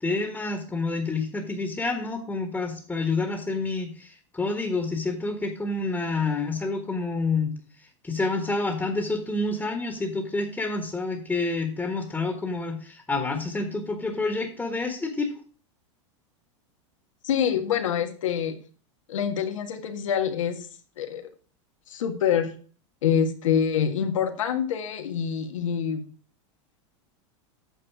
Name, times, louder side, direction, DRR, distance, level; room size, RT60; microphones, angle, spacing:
voice 1, 0.0-7.5 8.0-15.3, left 3 dB, 10° left, 4 dB, 1.5 m, -28 dB
voice 2, 17.2-18.6 19.1-20.7 21.0-21.3 21.9-22.5 23.0-26.0, left 8 dB, 90° left, 6 dB, 1.6 m, -26 dB
9.1 x 6.4 x 4.7 m, 0.41 s
supercardioid pair, 125°, 16 cm